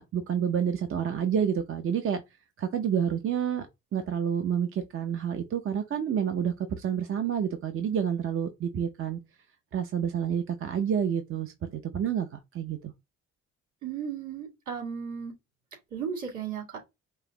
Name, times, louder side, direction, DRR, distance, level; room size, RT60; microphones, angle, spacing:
voice 1, 0.0-2.2 2.6-3.7 3.9-9.2 9.7-12.9, right 8 dB, 45° right, 0.6 m, -29 dB
voice 2, 13.8-15.3 15.9-16.8, right 7 dB, 75° right, 2.7 m, -35 dB
5.4 x 2.0 x 3.7 m
cardioid pair, 90°, 30 cm